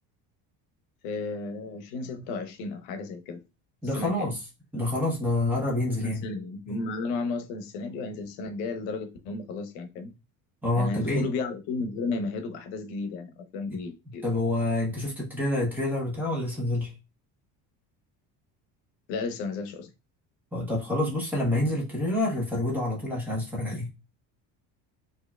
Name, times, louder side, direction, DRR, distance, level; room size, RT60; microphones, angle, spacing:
voice 1, 1.0-3.4 4.0-4.3 5.7-10.1 10.8-14.2 19.1-19.9, left 3 dB, 80° left, 0.9 m, -33 dB
voice 2, 3.8-4.4 4.7-6.3 10.6-11.2 14.2-16.9 20.5-23.9, left 1 dB, 5° right, 1.1 m, -27 dB
4.5 x 2.7 x 2.3 m
cardioid pair, 175°, 37 cm